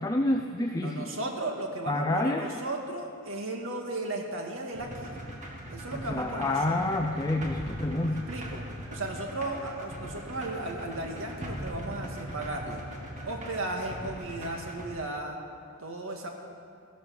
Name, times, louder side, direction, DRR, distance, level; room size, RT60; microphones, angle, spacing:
voice 1, 0.0-1.1 1.9-2.6 5.9-8.3, left 1 dB, 15° left, 3 dB, 0.6 m, -28 dB
voice 2, 0.8-5.1 5.7-6.8 8.1-12.8 13.2-15.4 15.8-16.3, right 2 dB, 65° right, 1 dB, 2.1 m, -35 dB
sound 1, 4.7-14.9, equal, 35° right, 2.1 m, -40 dB
14.5 x 12.5 x 7.1 m, 2.3 s
head